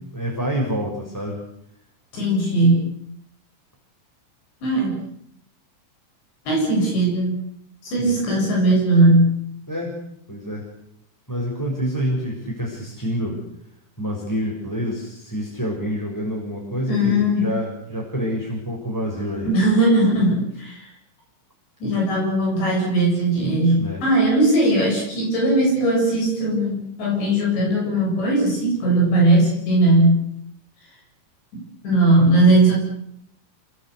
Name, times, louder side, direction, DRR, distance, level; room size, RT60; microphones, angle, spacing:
voice 1, 0.1-1.4 8.0-8.2 9.7-10.7 11.3-13.4 14.0-19.5 23.8-24.1, equal, 5° left, -2 dB, 6.5 m, -27 dB
voice 2, 2.1-2.8 4.6-5.0 6.5-7.3 7.8-9.4 16.9-17.5 19.4-20.9 21.8-30.2 31.8-32.8, right 1 dB, 65° left, 0 dB, 10.0 m, -18 dB
29.5 x 21.5 x 8.3 m, 0.73 s
omnidirectional pair, 5.5 m